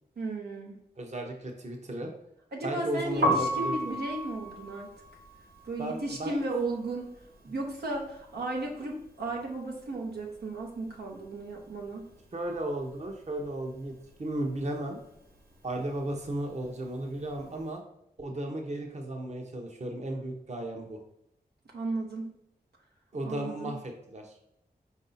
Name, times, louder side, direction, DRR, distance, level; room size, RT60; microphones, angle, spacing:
voice 1, 0.2-0.8 2.5-4.9 5.6-7.1 7.4-12.1 21.7-22.3 23.2-23.8, right 2 dB, 90° right, -1 dB, 0.9 m, -35 dB
voice 2, 1.0-2.1 2.6-3.8 5.8-6.4 12.3-13.9 14.2-15.0 15.6-17.8 18.2-21.0 23.1-24.3, right 1 dB, 45° right, 2 dB, 0.8 m, -35 dB
Piano, 3.1-9.0 9.3-10.9 11.1-17.6, equal, 70° right, 1.3 m, -35 dB
4.7 x 2.7 x 4.0 m, 0.77 s
cardioid pair, 50°, 16 cm